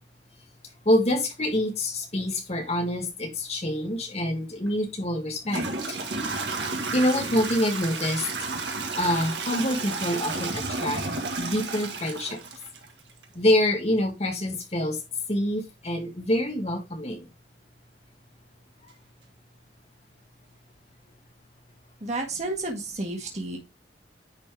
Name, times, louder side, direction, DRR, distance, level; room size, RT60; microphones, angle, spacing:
voice 1, 0.9-6.0 6.9-8.3 9.0-11.0 11.3-12.4 13.4-15.0 15.3-17.3, left 1 dB, 35° left, 3 dB, 1.8 m, -26 dB
Toilet flush / Trickle dribble, 4.7-4.8 5.4-13.2, right 3 dB, 75° right, 1.6 m, -32 dB
voice 2, 22.0-23.6, right 2 dB, 40° right, 1 dB, 1.7 m, -31 dB
9.8 x 4.2 x 3.4 m, 0.25 s
head